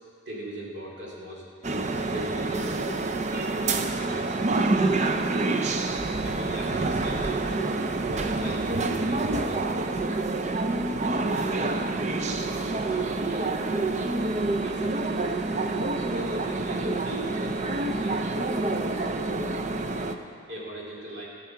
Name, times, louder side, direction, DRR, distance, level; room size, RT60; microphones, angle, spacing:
voice 1, 0.3-1.5 2.1-4.9 6.2-7.7 8.0-9.7 10.8-11.9 12.2-14.2 14.6-15.1 16.1-19.2 19.7-20.1 20.5-21.3, right 1 dB, 60° right, -4 dB, 2.6 m, -40 dB
sound 1, 1.6-20.2, right 2 dB, 35° right, 0.5 m, -27 dB
14.5 x 6.9 x 5.7 m, 2.3 s
head